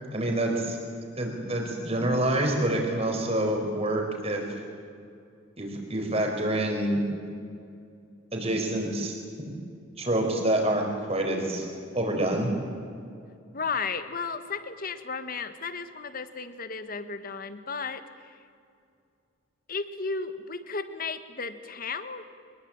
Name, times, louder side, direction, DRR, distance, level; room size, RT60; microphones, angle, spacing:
voice 1, 0.1-0.8 1.1-4.4 5.6-7.0 8.3-9.2 10.0-10.8 11.1-11.7 11.9-12.5, right 1 dB, 30° right, 2 dB, 4.7 m, -27 dB
voice 2, 13.5-18.0 19.7-22.3, left 4 dB, 45° left, 10 dB, 1.5 m, -34 dB
24.5 x 21.5 x 8.8 m, 2.4 s
head